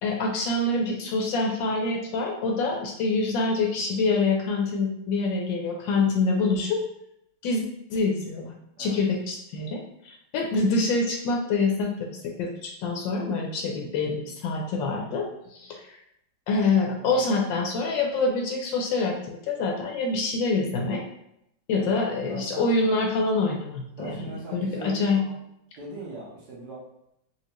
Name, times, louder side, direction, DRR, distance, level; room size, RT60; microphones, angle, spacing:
voice 1, 0.0-6.8 7.4-7.6 7.9-16.0 16.5-21.0 21.7-25.2, left 3 dB, 75° left, 1 dB, 1.2 m, -26 dB
voice 2, 22.3-22.7 24.0-25.4 25.8-26.8, right 2 dB, 60° right, -5 dB, 1.4 m, -41 dB
4.3 x 2.4 x 2.9 m, 0.79 s
omnidirectional pair, 2.2 m